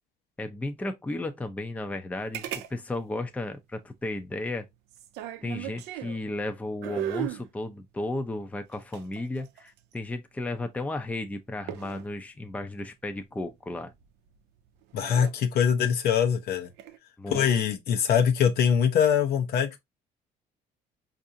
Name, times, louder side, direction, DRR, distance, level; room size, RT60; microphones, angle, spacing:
voice 1, 0.4-4.7 5.4-13.9 17.2-17.6, left 2 dB, 10° left, 0.5 m, -34 dB
sound 1, 2.3-2.7 2.9-3.0 4.9-6.2 6.8-7.5 8.7-9.9 11.7-12.1 13.9-14.3 14.8-15.3 16.7-17.0, right 12 dB, 85° right, 0.5 m, -36 dB
voice 2, 14.9-16.7 17.3-19.8, left 8 dB, 70° left, 0.8 m, -23 dB
4.6 x 2.6 x 2.6 m
cardioid pair, 110°, 17 cm